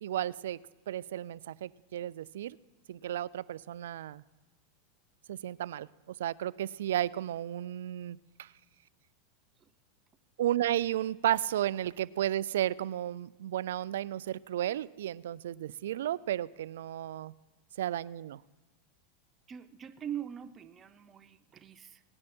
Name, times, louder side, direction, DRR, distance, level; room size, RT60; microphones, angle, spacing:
voice 1, 0.0-0.6 0.9-2.6 2.9-4.2 5.3-5.9 6.2-8.5 10.4-17.3 17.8-18.4, right 12 dB, 85° right, 20 dB, 0.3 m, -33 dB
voice 2, 19.5-22.0, right 9 dB, 25° right, 11 dB, 0.6 m, -42 dB
18.5 x 9.7 x 4.3 m, 1.1 s
supercardioid pair, 130°, 0 cm